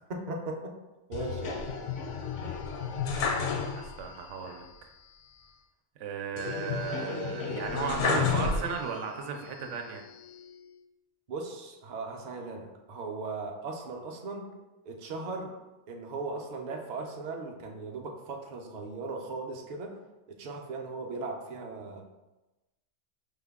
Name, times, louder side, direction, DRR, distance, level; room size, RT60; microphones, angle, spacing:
voice 1, 0.1-0.7 1.1-1.7 11.3-14.5 14.9-15.5 15.9-19.9 20.4-22.0, right 3 dB, 50° right, 1 dB, 0.5 m, -38 dB
sound 1, 1.1-4.2 4.5-4.6 6.4-9.1 9.6-10.5, left 5 dB, 75° left, 0.9 m, -32 dB
voice 2, 3.6-4.7 6.0-10.0 12.1-12.2, right 5 dB, 80° right, 3 dB, 0.9 m, -35 dB
5.2 x 2.2 x 3.5 m, 1.1 s
omnidirectional pair, 1.3 m